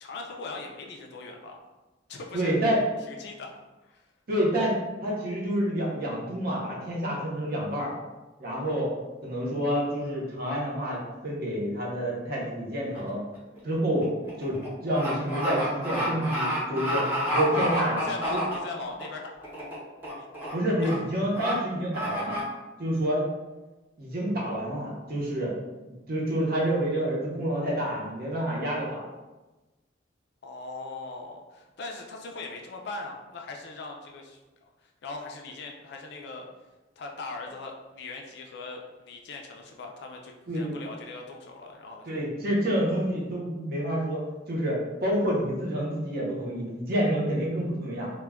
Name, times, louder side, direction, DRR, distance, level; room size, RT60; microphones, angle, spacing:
voice 1, 0.0-1.6 2.1-2.6 3.1-3.5 3.8-4.1 17.5-19.5 20.2-20.3 20.8-20.9 30.4-36.5 37.0-42.2, left 3 dB, 60° left, 1 dB, 0.4 m, -40 dB
voice 2, 2.3-2.8 4.3-7.9 8.4-8.9 9.2-13.2 13.6-14.1 14.4-18.0 18.3-18.4 20.5-22.4 22.8-23.3 24.0-25.5 26.1-29.0 40.5-40.8 42.1-44.2 44.5-48.1, equal, 50° right, -3 dB, 0.7 m, -28 dB
sound 1, 12.9-13.2 13.5-19.0 19.4-19.8 20.0-20.5 20.8-20.9 21.3-21.5 21.9-22.4, equal, 10° right, 0.7 m, -30 dB
2.2 x 2.1 x 3.4 m, 1.1 s
head